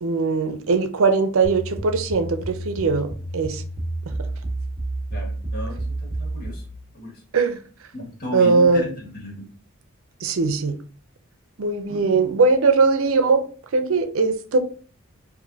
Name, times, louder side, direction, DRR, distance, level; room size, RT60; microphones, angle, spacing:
voice 1, 0.0-3.1 3.3-3.6 7.3-7.6 8.3-8.9 10.2-10.8 11.6-13.4 13.7-14.6, right 4 dB, 70° right, 0.5 m, -20 dB
sound 1, 1.4-6.7, right 2 dB, 5° right, 1.2 m, -30 dB
voice 2, 5.1-6.6 6.9-7.2 7.9-9.5 11.9-12.4, left 1 dB, 45° left, 1.6 m, -35 dB
4.9 x 2.6 x 2.7 m
head